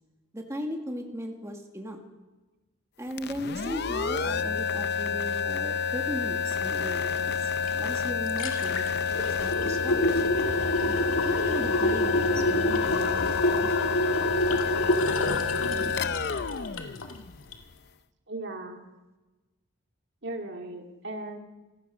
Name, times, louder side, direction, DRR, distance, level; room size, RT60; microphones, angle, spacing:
voice 1, 0.3-2.0 3.0-7.5 7.7-8.9 9.4-10.0 11.2-14.0, equal, 15° right, 2 dB, 2.0 m, -37 dB
sound 1, 3.1-17.7, left 6 dB, 50° left, 0.7 m, -29 dB
sound 2, 7.7-7.8 8.1-17.2 17.5-17.6, left 1 dB, 75° left, 2.3 m, -27 dB
voice 2, 18.3-18.8 20.2-21.4, right 2 dB, 55° right, 3 dB, 2.4 m, -37 dB
27.0 x 16.5 x 6.3 m, 1.2 s
head